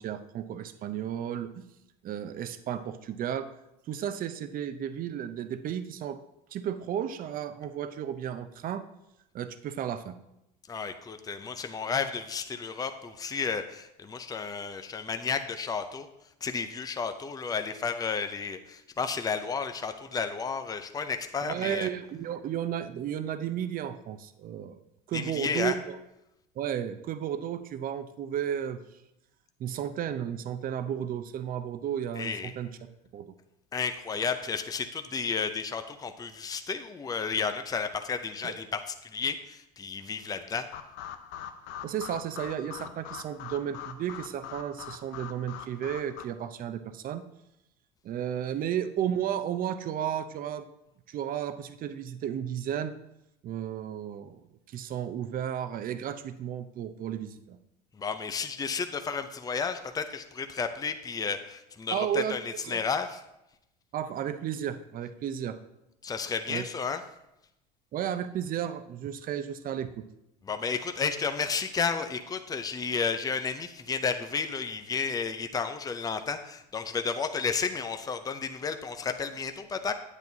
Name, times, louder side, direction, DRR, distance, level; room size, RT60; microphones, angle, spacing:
voice 1, 0.0-1.6 2.0-3.5 3.9-6.2 6.5-8.8 9.3-10.2 21.4-24.8 25.1-25.9 26.6-28.8 29.6-32.7 33.1-33.3 38.4-38.5 41.8-47.2 48.0-50.6 51.1-52.9 53.4-54.4 54.7-57.6 61.9-62.4 62.6-62.8 63.9-65.6 66.5-66.6 67.9-70.0, right 9 dB, 45° right, 11 dB, 0.7 m, -33 dB
voice 2, 10.7-16.1 16.4-21.9 25.1-25.7 32.2-32.5 33.7-40.7 57.9-63.2 66.0-67.0 70.4-79.9, left 5 dB, 20° left, 8 dB, 0.6 m, -32 dB
sound 1, 40.7-46.2, left 9 dB, 65° left, 0.7 m, -43 dB
8.9 x 8.1 x 2.8 m, 0.86 s
hypercardioid pair, 85°, 21 cm